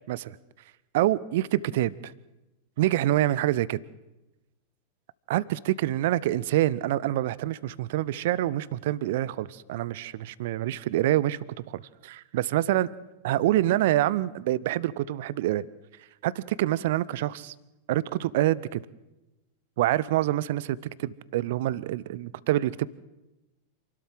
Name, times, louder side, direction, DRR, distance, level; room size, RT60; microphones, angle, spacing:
voice 1, 0.9-2.1 2.8-3.8 5.3-11.4 11.7-12.9 13.2-15.6 16.2-17.5 17.9-18.8 19.8-22.9, right 14 dB, 55° right, 21 dB, 0.7 m, -26 dB
27.5 x 12.5 x 7.6 m, 0.99 s
figure-of-eight pair, 90°, 0 cm